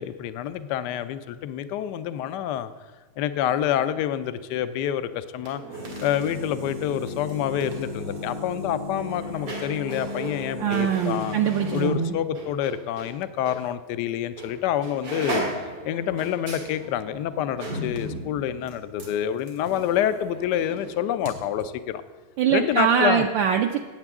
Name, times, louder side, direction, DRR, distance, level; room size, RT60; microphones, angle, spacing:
voice 1, 0.0-2.7 3.2-5.6 6.0-11.3 11.7-15.4 15.8-22.0 22.5-23.3, left 10 dB, 80° left, 12 dB, 0.9 m, -27 dB
sound 1, 5.3-13.1 13.5-13.6 14.4-14.6 14.8-21.3 21.6-21.7, equal, 90° right, 3.3 m, -35 dB
voice 2, 10.6-12.1 22.4-23.8, right 8 dB, 75° right, 3 dB, 1.2 m, -23 dB
14.5 x 8.9 x 3.6 m, 1.3 s
omnidirectional pair, 2.4 m